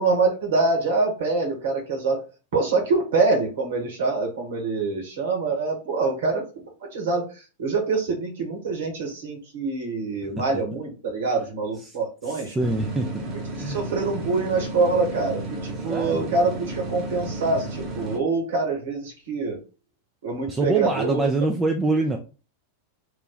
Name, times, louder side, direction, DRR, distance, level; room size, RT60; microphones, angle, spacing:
voice 1, 0.0-2.3 2.5-6.5 6.9-12.5 13.7-19.6 20.2-21.3, right 3 dB, 60° right, 1.3 m, -25 dB
voice 2, 12.3-13.1 13.5-13.8 15.9-16.3 20.5-22.2, right 2 dB, 15° right, 0.4 m, -25 dB
sound 1, 12.6-18.2, right 2 dB, 35° right, 0.9 m, -33 dB
3.1 x 2.2 x 3.9 m
figure-of-eight pair, 90°, 0 cm